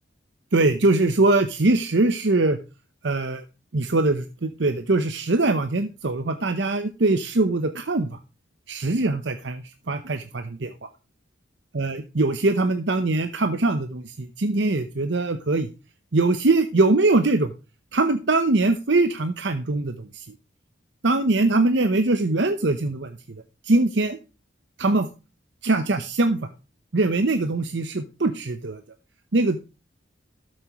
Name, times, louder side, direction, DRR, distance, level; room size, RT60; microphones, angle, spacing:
voice 1, 0.5-2.6 3.0-3.4 3.7-8.2 8.7-10.9 11.7-15.7 16.1-17.5 17.9-20.3 21.0-23.2 23.6-24.2 24.8-25.1 25.6-26.5 26.9-28.8 29.3-29.6, right 2 dB, 65° right, 9 dB, 0.9 m, -22 dB
13.0 x 7.6 x 3.0 m, 0.30 s
head